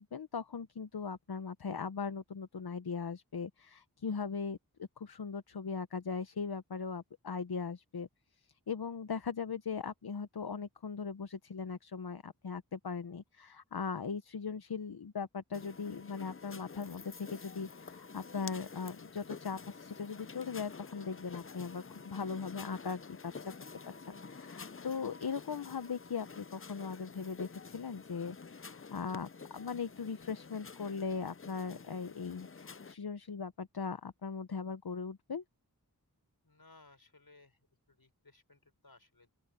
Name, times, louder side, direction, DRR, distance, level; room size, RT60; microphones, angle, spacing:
voice 1, 0.0-8.1 8.4-23.5 24.0-35.4, left 5 dB, 90° left, 0.8 m, -39 dB
sound 1, 15.5-32.9, left 5 dB, 35° left, 0.6 m, -49 dB
voice 2, 36.4-37.6 37.9-39.3, left 3 dB, 70° left, 5.3 m, -61 dB
open air
wide cardioid pair, 45°, 37 cm